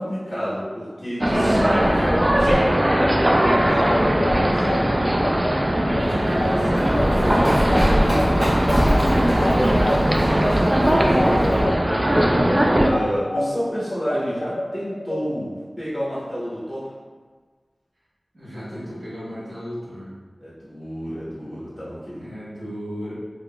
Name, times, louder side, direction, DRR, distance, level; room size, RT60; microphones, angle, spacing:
voice 1, 0.0-2.7 6.4-8.5 11.1-11.8 12.8-16.9 20.4-22.2, equal, 35° left, -10 dB, 0.9 m, -29 dB
sound 1, 1.2-12.9, equal, 25° right, 0.3 m, -19 dB
sound 2, 2.5-11.7 12.1-15.2, left 1 dB, 70° left, 0.3 m, -28 dB
voice 2, 3.7-4.9 18.3-20.1 22.2-23.1, equal, 70° right, -14 dB, 1.3 m, -37 dB
Run, 6.0-11.6, equal, 45° right, 1.0 m, -24 dB
3.6 x 2.3 x 2.2 m, 1.4 s
wide cardioid pair, 55°, 0 cm